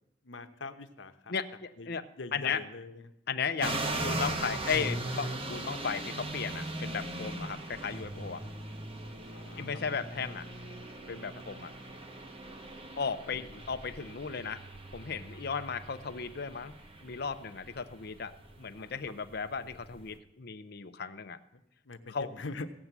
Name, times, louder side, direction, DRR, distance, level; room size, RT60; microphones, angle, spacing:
voice 1, 0.2-1.3 1.8-1.9 2.2-3.1 9.3-9.7 11.3-11.4 13.3-13.6 18.8-19.0 21.8-22.7, left 3 dB, 85° left, 9 dB, 1.0 m, -43 dB
voice 2, 1.3-2.6 3.3-8.4 9.5-10.4 11.1-11.7 13.0-14.6 14.9-16.7 17.0-21.4 22.1-22.3, left 6 dB, 55° left, 10 dB, 0.7 m, -36 dB
sound 1, 3.6-20.1, right 1 dB, 30° right, 1.2 m, -39 dB
16.0 x 7.6 x 8.2 m, 0.87 s
head